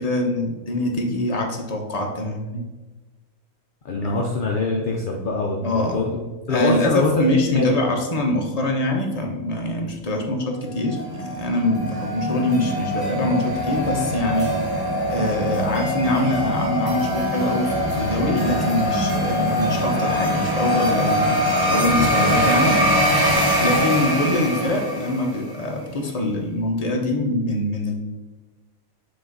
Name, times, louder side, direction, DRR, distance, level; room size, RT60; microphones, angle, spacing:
voice 1, 0.0-2.7 4.0-4.1 5.6-6.0 6.5-14.6 15.1-22.8 23.6-27.9, left 1 dB, 30° left, 1 dB, 0.9 m, -24 dB
voice 2, 3.8-6.1 6.5-7.8, left 2 dB, 50° left, -1 dB, 0.6 m, -23 dB
sound 1, 10.9-25.5, equal, 20° right, 0.9 m, -23 dB
6.9 x 3.7 x 3.9 m, 1.2 s
omnidirectional pair, 1.5 m